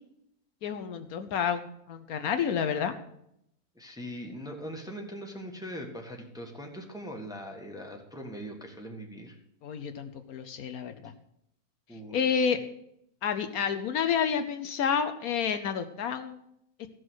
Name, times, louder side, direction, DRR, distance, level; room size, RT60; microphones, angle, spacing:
voice 1, 0.6-2.9 9.6-11.1 12.1-12.6 13.2-16.4, left 7 dB, 70° left, 9 dB, 1.2 m, -29 dB
voice 2, 3.7-9.4 11.9-12.6, equal, 5° right, 1 dB, 1.3 m, -41 dB
14.5 x 6.2 x 6.3 m, 0.76 s
omnidirectional pair, 1.6 m